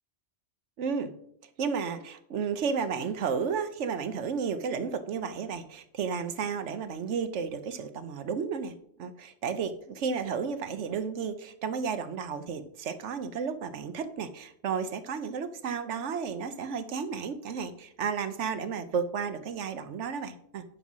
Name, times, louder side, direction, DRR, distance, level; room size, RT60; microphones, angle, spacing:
voice 1, 0.8-1.1 1.6-8.7 9.0-20.6, right 6 dB, 85° right, 11 dB, 1.1 m, -32 dB
9.7 x 6.1 x 5.5 m, 0.70 s
omnidirectional pair, 1.2 m